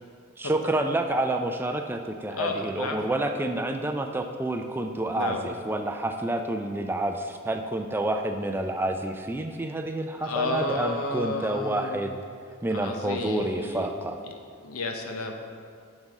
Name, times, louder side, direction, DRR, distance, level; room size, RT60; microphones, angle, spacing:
voice 1, 0.4-12.1 12.6-14.2, right 1 dB, 10° right, 5 dB, 0.3 m, -29 dB
voice 2, 2.3-3.0 5.1-5.4 10.2-12.0 12.7-13.9 14.2-14.3 14.6-15.3, left 2 dB, 85° left, 4 dB, 0.9 m, -31 dB
11.5 x 5.4 x 3.6 m, 2.2 s
head